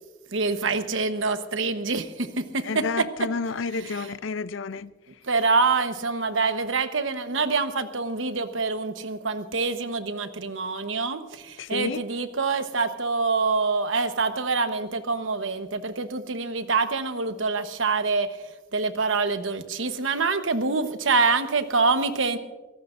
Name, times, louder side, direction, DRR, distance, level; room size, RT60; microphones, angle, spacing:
voice 1, 0.3-2.3 2.5-3.3 3.7-4.1 5.3-18.3 18.7-22.4, right 4 dB, 75° right, 1.1 m, -26 dB
voice 2, 2.6-4.9 11.6-12.0, left 4 dB, 70° left, 0.5 m, -30 dB
24.5 x 18.0 x 2.6 m
head